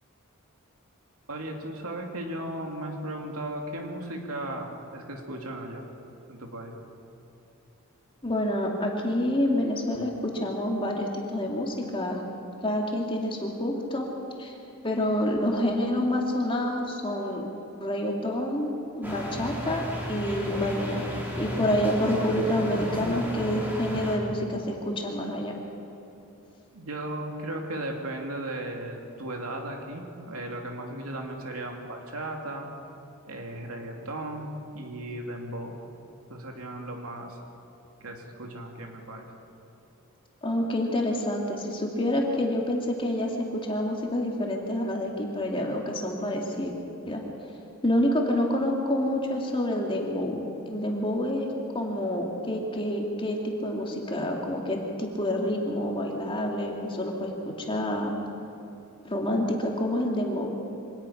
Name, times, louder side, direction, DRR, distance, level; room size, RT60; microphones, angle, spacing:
voice 1, 1.3-5.9 6.3-6.7 26.7-32.7 33.3-35.8 36.3-37.4 38.0-39.3, right 1 dB, 75° right, 2 dB, 2.8 m, -36 dB
voice 2, 8.2-12.2 12.6-14.1 14.4-14.6 14.8-17.5 17.8-19.8 20.1-21.0 21.3-25.5 40.4-46.7 47.1-47.2 47.8-50.4 50.7-51.5 51.7-58.1 59.0-60.6, left 1 dB, 25° left, 0 dB, 2.3 m, -28 dB
sound 1, 19.0-24.2, equal, 10° right, 3.9 m, -33 dB
24.5 x 18.5 x 5.9 m, 2.9 s
head